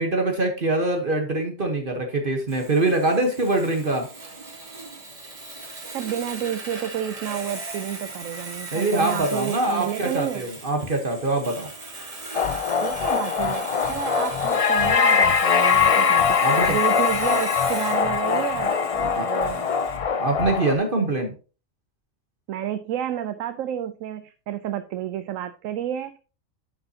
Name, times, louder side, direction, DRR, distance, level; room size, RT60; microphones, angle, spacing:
voice 1, 0.0-4.1 8.7-11.7 16.4-16.8 19.2-19.3 20.2-21.3, right 2 dB, 45° right, 4 dB, 1.3 m, -24 dB
Sawing, 2.5-20.0, right 2 dB, 30° right, 1.4 m, -38 dB
voice 2, 5.9-10.5 12.8-19.7 22.5-26.2, right 10 dB, 85° right, 10 dB, 1.0 m, -30 dB
sound 1, 12.3-20.8, left 6 dB, 55° left, 0.3 m, -22 dB
11.0 x 5.5 x 2.8 m, 0.35 s
omnidirectional pair, 1.3 m